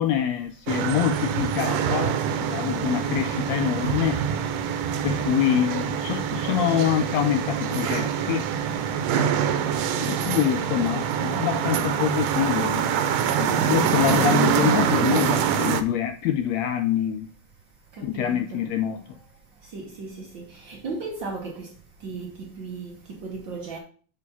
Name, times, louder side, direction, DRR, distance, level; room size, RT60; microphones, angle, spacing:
voice 1, 0.0-4.2 5.0-8.5 10.1-12.9 13.4-17.3 18.0-19.2, left 10 dB, 80° left, 1.5 m, -25 dB
sound 1, 0.7-15.8, right 8 dB, 80° right, 2.2 m, -25 dB
voice 2, 9.9-10.4 13.4-13.9 18.0-18.6 19.7-21.7 22.0-23.8, right 4 dB, 60° right, 1.2 m, -36 dB
6.7 x 4.8 x 5.4 m
omnidirectional pair, 3.6 m